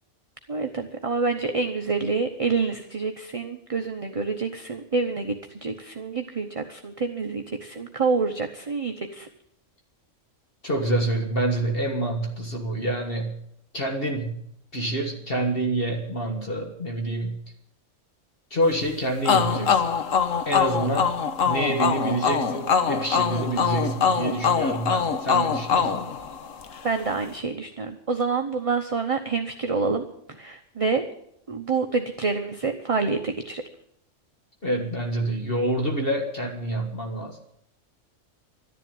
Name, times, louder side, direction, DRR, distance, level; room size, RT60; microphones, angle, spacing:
voice 1, 0.5-9.3 26.8-30.0 30.4-31.0 31.5-33.6, right 4 dB, 30° right, 5 dB, 0.9 m, -27 dB
voice 2, 10.6-13.3 13.7-14.4 14.7-17.4 18.5-19.8 20.4-21.1 21.4-26.1 34.6-37.5, right 1 dB, 45° left, 2 dB, 1.8 m, -27 dB
sound 1, 19.3-26.8, left 6 dB, 80° left, 1.5 m, -23 dB
12.5 x 10.5 x 9.2 m, 0.74 s
omnidirectional pair, 1.3 m